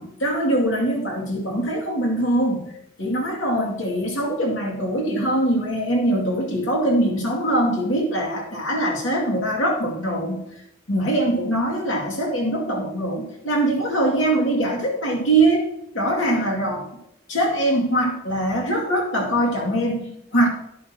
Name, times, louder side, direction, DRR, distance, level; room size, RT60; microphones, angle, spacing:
voice 1, 0.0-2.7 3.0-10.5 10.9-15.7 15.9-16.9 17.3-20.5, right 1 dB, 70° left, 0 dB, 2.4 m, -22 dB
10.5 x 10.5 x 2.9 m, 0.77 s
head